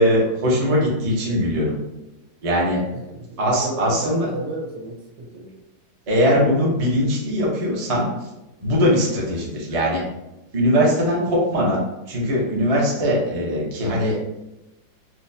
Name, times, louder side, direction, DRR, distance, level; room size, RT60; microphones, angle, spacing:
voice 1, 0.0-1.7 2.4-2.8 3.4-4.3 6.1-8.3 8.6-10.0 10.5-11.8 12.1-14.4, equal, 55° right, -4 dB, 0.4 m, -20 dB
voice 2, 3.1-5.5, right 1 dB, 80° right, 0 dB, 1.5 m, -32 dB
4.4 x 2.2 x 2.7 m, 0.94 s
omnidirectional pair, 2.1 m